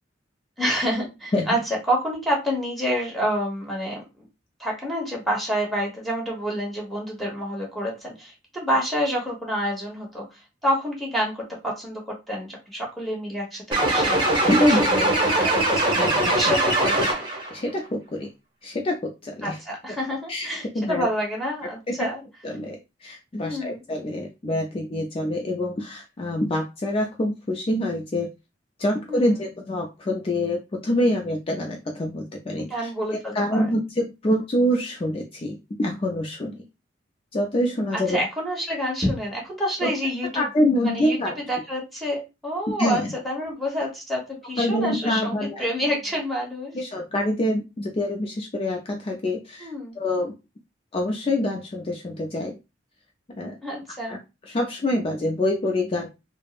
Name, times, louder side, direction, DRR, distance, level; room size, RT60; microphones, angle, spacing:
voice 1, 0.6-4.0 4.6-10.2 10.6-15.2 15.4-16.9 19.4-22.2 23.4-23.8 29.1-29.3 32.6-33.6 37.9-40.5 40.8-41.2 41.5-46.8 49.6-50.0 53.6-54.2, equal, ahead, -3 dB, 1.1 m, -28 dB
sound 1, 13.7-17.5, right 1 dB, 30° right, 0.9 m, -21 dB
voice 2, 14.5-15.2 16.0-16.6 17.0-17.1 17.5-18.3 18.6-19.6 20.3-20.5 20.7-21.1 21.9-22.0 22.4-28.3 28.8-36.6 37.3-38.2 39.8-39.9 40.3-41.4 42.8-43.1 44.6-45.6 46.7-50.3 50.9-52.6 53.4-53.6 54.1-54.2 54.4-56.1, left 1 dB, 30° left, 2 dB, 0.4 m, -26 dB
3.5 x 2.0 x 2.4 m, 0.25 s
head